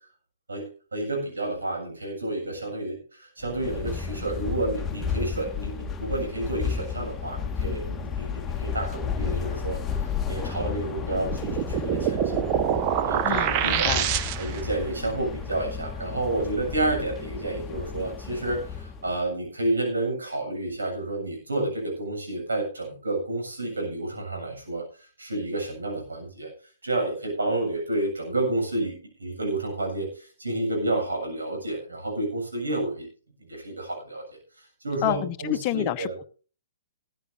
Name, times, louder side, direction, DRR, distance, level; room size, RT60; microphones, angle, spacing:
voice 1, 0.5-12.6 13.0-14.0 14.4-26.5 26.8-33.1 33.5-34.2 34.6-36.1, right 2 dB, 80° right, 1 dB, 7.7 m, -30 dB
sound 1, 3.4-19.2, left 6 dB, 15° left, 1.4 m, -32 dB
sound 2, 11.1-14.7, right 10 dB, 35° right, 1.0 m, -26 dB
voice 2, 13.2-14.1 35.0-36.2, left 14 dB, 35° left, 9 dB, 0.9 m, -29 dB
18.0 x 14.0 x 2.8 m, 0.38 s
figure-of-eight pair, 120°, 0 cm